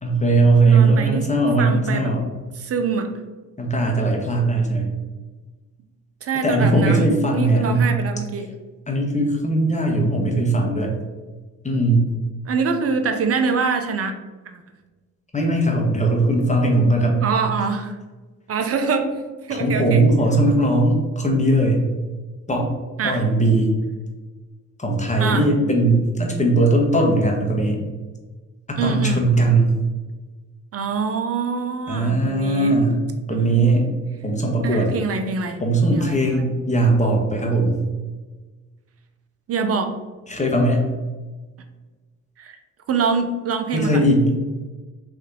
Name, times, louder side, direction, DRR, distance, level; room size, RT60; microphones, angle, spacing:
voice 1, 0.0-2.3 3.6-4.9 6.4-7.9 8.9-11.0 11.6-12.0 15.3-17.2 19.5-21.9 22.5-22.7 23.0-23.7 24.8-27.8 28.7-29.7 31.9-33.0 33.3-33.8 34.2-34.9 35.6-37.8 40.3-40.8 43.7-44.3, right 2 dB, 20° left, 1 dB, 1.1 m, -19 dB
voice 2, 0.7-1.3 1.6-2.2 2.6-3.1 6.2-8.5 12.5-14.1 14.5-14.6 17.2-18.0 18.5-19.1 19.5-20.0 23.0-23.2 25.2-25.5 28.8-29.2 30.7-32.7 33.3-33.7 34.6-35.6 35.9-36.5 39.5-40.0 42.4-42.6 42.9-44.0, right 5 dB, 40° right, 7 dB, 0.7 m, -24 dB
3.5 x 2.7 x 3.8 m, 1.3 s
hypercardioid pair, 50°, 37 cm